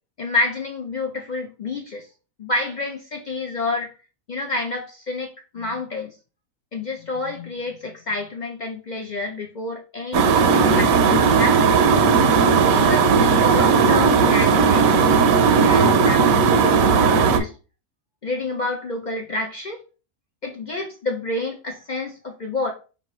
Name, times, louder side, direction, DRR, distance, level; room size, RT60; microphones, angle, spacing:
voice 1, 0.2-2.1 2.4-3.9 4.3-6.1 6.7-11.7 12.7-17.6 18.2-19.8 20.4-22.7, left 2 dB, 70° left, 1 dB, 0.4 m, -29 dB
sound 1, 10.1-17.4, right 5 dB, 70° right, 1.0 m, -16 dB
5.3 x 2.8 x 3.1 m, 0.34 s
omnidirectional pair, 1.6 m